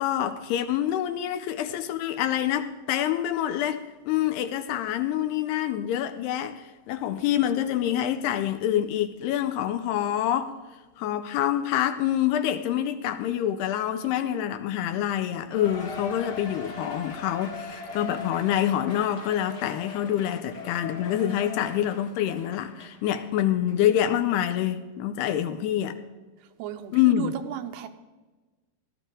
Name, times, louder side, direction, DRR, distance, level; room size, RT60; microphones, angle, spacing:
voice 1, 0.0-10.5 11.0-26.0 26.9-27.3, left 11 dB, 85° left, 10 dB, 2.6 m, -26 dB
Cheering, 15.5-23.3 23.7-23.8 24.4-24.5, left 4 dB, 55° left, 1.1 m, -40 dB
voice 2, 26.6-27.9, right 11 dB, 80° right, 8 dB, 2.6 m, -34 dB
18.5 x 12.5 x 3.7 m, 1.2 s
omnidirectional pair, 5.0 m